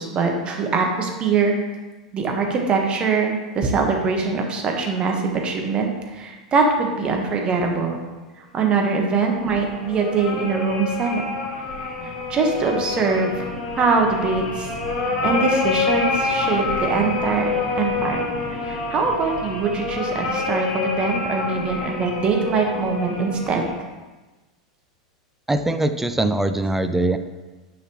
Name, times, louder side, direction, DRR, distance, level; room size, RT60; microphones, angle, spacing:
voice 1, 0.0-1.5 2.1-8.0 8.4-11.2 12.3-13.5 13.8-14.7 15.2-17.5 17.8-18.2 18.6-23.6, right 4 dB, 30° right, 2 dB, 1.4 m, -22 dB
sound 1, 9.3-23.7, left 3 dB, 35° left, 2.1 m, -27 dB
voice 2, 25.5-27.2, right 2 dB, 5° right, 9 dB, 0.5 m, -22 dB
9.7 x 5.7 x 3.1 m, 1.2 s
figure-of-eight pair, 85°, 3 cm